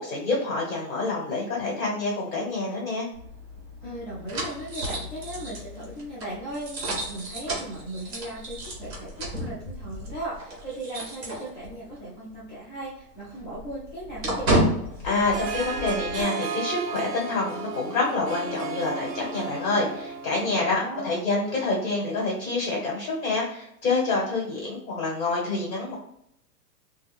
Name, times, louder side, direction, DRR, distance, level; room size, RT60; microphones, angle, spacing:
voice 1, 0.0-3.1 15.0-25.9, left 3 dB, 55° left, -3 dB, 1.2 m, -27 dB
sound 1, 3.1-12.0 12.3-12.4 12.8-16.2, right 1 dB, 40° right, 0.9 m, -32 dB
voice 2, 3.8-14.6 20.5-21.1, right 1 dB, 30° left, -9 dB, 0.5 m, -37 dB
Harp, 15.3-20.8, right 4 dB, 70° right, 0.6 m, -34 dB
2.5 x 2.2 x 3.3 m, 0.75 s
hypercardioid pair, 175°, 49 cm